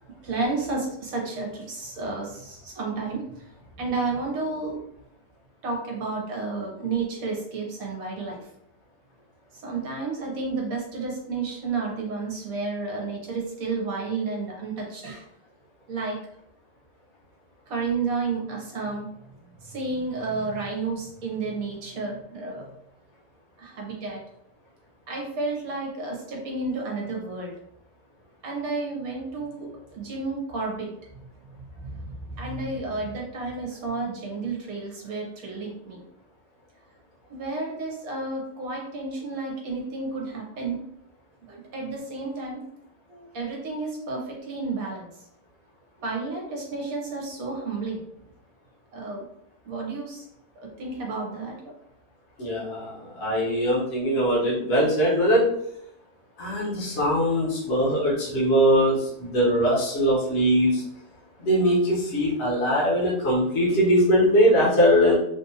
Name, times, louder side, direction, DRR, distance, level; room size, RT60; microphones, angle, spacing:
voice 1, 0.2-3.4 3.8-4.8 5.6-8.5 9.5-15.2 15.9-16.2 17.7-19.1 19.6-22.7 23.6-24.2 25.1-27.5 28.4-30.9 31.7-36.0 37.3-40.8 41.5-42.6 43.1-45.1 46.0-48.0 48.9-49.3 49.6-50.3 50.6-51.6, right 3 dB, 60° right, -1 dB, 1.3 m, -31 dB
voice 2, 52.4-55.5 56.4-60.8 61.4-65.2, equal, 45° left, -7 dB, 1.2 m, -21 dB
3.5 x 2.5 x 2.8 m, 0.76 s
omnidirectional pair, 1.8 m